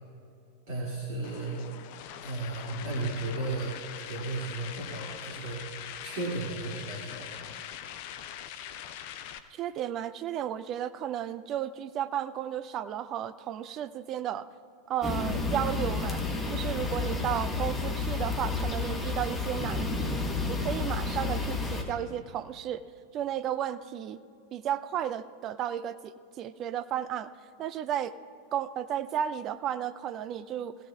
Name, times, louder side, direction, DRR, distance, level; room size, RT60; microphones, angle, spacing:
voice 1, 0.7-1.6 2.2-7.3, right 2 dB, 50° right, -5 dB, 2.4 m, -35 dB
sound 1, 1.2-9.4, left 10 dB, 50° left, 0.6 m, -42 dB
voice 2, 9.5-14.5 14.9-16.2 16.5-20.2 20.5-22.8 23.1-24.2 24.5-27.3 27.6-28.1 28.5-30.8, right 10 dB, 35° right, 13 dB, 0.5 m, -33 dB
sound 2, 15.0-21.8, left 3 dB, 15° left, 1.5 m, -31 dB
20.0 x 15.5 x 2.4 m, 2.5 s
figure-of-eight pair, 90°, 0 cm